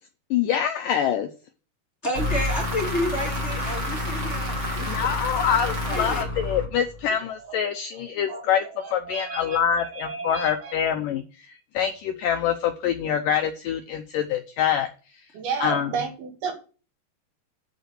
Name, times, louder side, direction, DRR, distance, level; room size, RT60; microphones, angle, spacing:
voice 1, 0.3-1.3 4.8-8.7 8.9-14.9 15.6-15.9, left 9 dB, 85° left, 1.9 m, -25 dB
voice 2, 2.0-5.1 5.9-6.3, left 1 dB, 20° left, 2.1 m, -30 dB
sound 1, 2.1-7.1, left 1 dB, 45° right, 0.9 m, -28 dB
voice 3, 8.8-10.8 15.3-16.5, right 5 dB, 70° right, 3.6 m, -32 dB
8.2 x 6.9 x 6.4 m
omnidirectional pair, 4.8 m